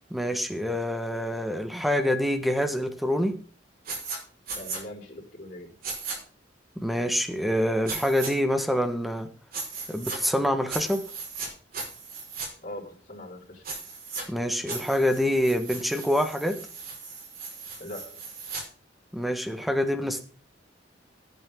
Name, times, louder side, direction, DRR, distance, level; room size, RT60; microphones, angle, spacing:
voice 1, 0.1-3.4 6.8-9.3 9.9-11.0 14.3-16.6 19.1-20.2, equal, ahead, 7 dB, 1.5 m, -26 dB
sound 1, 3.9-4.2 4.5-4.8 5.8-6.2 7.9-8.3 9.5-10.2 10.7-11.5 11.7-12.5 13.6-14.2 14.7-18.6, right 4 dB, 55° right, 5.2 m, -37 dB
voice 2, 4.5-5.7 12.6-13.6 17.8-18.3, left 1 dB, 45° left, -4 dB, 4.8 m, -41 dB
17.5 x 9.1 x 3.8 m, 0.38 s
head